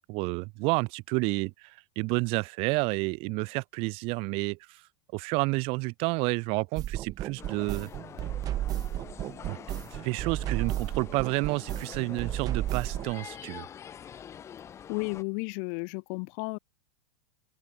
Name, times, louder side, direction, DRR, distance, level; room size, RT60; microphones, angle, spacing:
voice 1, 0.0-4.8 5.1-7.9 9.5-9.6 9.9-13.7, right 27 dB, 40° right, 7.1 m, -30 dB
sound 1, 6.8-13.1, right 13 dB, 25° right, 1.3 m, -33 dB
sound 2, 7.4-15.2, left 8 dB, 20° left, 3.3 m, -46 dB
voice 2, 14.9-16.6, left 40 dB or more, 45° left, 2.6 m, -33 dB
supercardioid pair, 165°, 15 cm